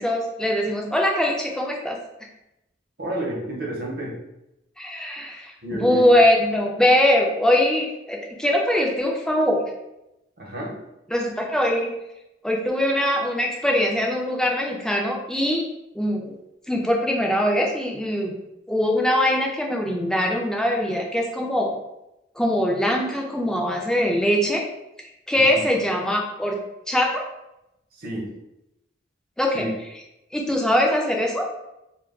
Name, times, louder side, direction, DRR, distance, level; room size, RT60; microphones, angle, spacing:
voice 1, 0.0-2.0 4.8-9.6 11.1-11.9 12.4-15.6 16.0-16.3 16.7-18.3 18.7-21.7 22.4-24.6 25.3-26.6 26.9-27.2 29.4-29.7 30.3-31.4, left 1 dB, 5° left, -1 dB, 0.3 m, -22 dB
voice 2, 3.0-4.2 5.6-6.1 10.4-10.7 25.3-25.6 27.9-28.3 29.5-29.7, right 1 dB, 55° right, -2 dB, 0.8 m, -30 dB
2.2 x 2.2 x 3.5 m, 0.90 s
head